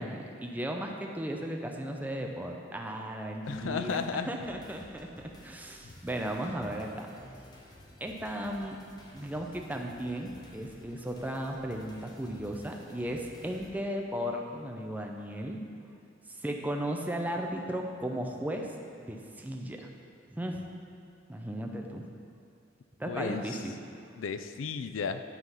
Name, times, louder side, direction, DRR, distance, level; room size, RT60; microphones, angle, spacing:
voice 1, 0.0-4.0 4.3-7.1 8.0-8.8 9.1-15.6 16.3-18.7 19.0-19.9 20.3-20.6 21.3-22.1 23.0-23.8, right 1 dB, 10° right, 1 dB, 0.6 m, -36 dB
sound 1, 3.4-13.7, equal, 20° left, 0.9 m, -53 dB
voice 2, 3.5-4.5 5.8-5.9 23.0-23.6 24.2-25.2, left 5 dB, 80° left, 10 dB, 0.4 m, -34 dB
10.5 x 3.8 x 5.6 m, 2.4 s
head